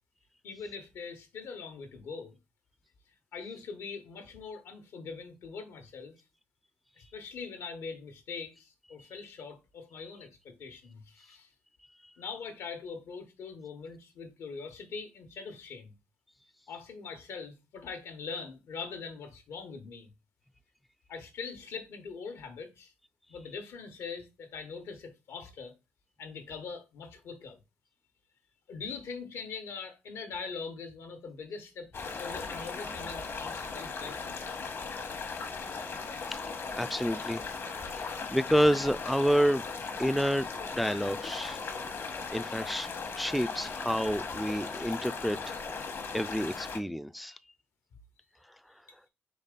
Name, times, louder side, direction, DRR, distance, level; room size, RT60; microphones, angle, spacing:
voice 1, 0.4-2.4 3.3-6.1 7.0-11.5 12.2-15.9 16.7-20.1 21.1-22.9 23.3-25.8 26.2-27.6 28.7-34.4, left 5 dB, 80° left, 1.1 m, -42 dB
sound 1, 31.9-46.8, left 4 dB, 55° left, 1.0 m, -38 dB
voice 2, 36.8-37.5 37.9-39.6 40.0-40.5 40.7-41.6 42.3-42.9 43.2-45.6 46.1-47.4, equal, ahead, 0.3 m, -29 dB
4.1 x 3.3 x 3.7 m
supercardioid pair, 60°, 5 cm